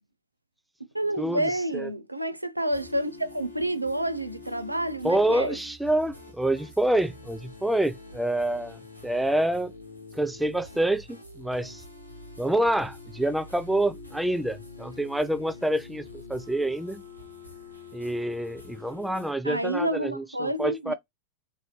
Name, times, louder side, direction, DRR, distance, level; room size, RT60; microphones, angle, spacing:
voice 1, 0.9-5.6 19.4-20.9, right 1 dB, 85° right, 0.3 m, -29 dB
sound 1, 2.7-19.3, left 3 dB, 85° left, 1.0 m, -46 dB
voice 2, 5.0-9.7 10.1-11.8 12.4-16.0 16.3-17.0 17.9-20.9, right 1 dB, 5° right, 0.3 m, -27 dB
3.0 x 2.6 x 2.9 m
figure-of-eight pair, 90°, 0 cm